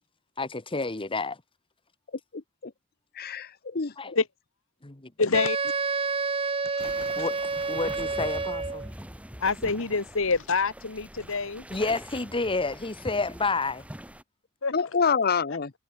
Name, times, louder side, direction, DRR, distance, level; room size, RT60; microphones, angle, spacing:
voice 1, 0.4-1.4 4.0-4.1 4.8-5.1 6.8-8.9 11.7-13.8, left 3 dB, 25° left, 1.5 m, -30 dB
voice 2, 2.3-2.7 3.2-4.2 14.7-15.7, left 5 dB, 45° left, 0.9 m, -27 dB
voice 3, 5.2-5.6 6.8-7.1 9.4-11.6 14.6-14.7, left 4 dB, 65° left, 1.6 m, -26 dB
Wind instrument woodwind instrument, 5.3-8.9, right 4 dB, 25° right, 1.2 m, -29 dB
sound 1, 6.8-14.2, equal, 5° right, 3.0 m, -43 dB
head